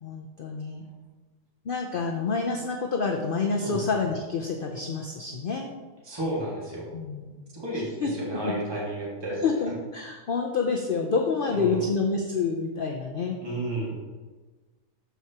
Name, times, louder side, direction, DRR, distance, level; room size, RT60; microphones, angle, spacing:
voice 1, 0.0-0.8 1.6-5.7 6.9-7.4 8.0-8.1 8.4-8.5 9.3-13.4, left 4 dB, 60° left, 1 dB, 0.5 m, -28 dB
voice 2, 6.0-6.9 7.5-9.4 11.5-11.8 13.4-14.0, right 1 dB, 15° right, -5 dB, 1.8 m, -32 dB
13.0 x 4.7 x 2.9 m, 1.3 s
omnidirectional pair, 1.7 m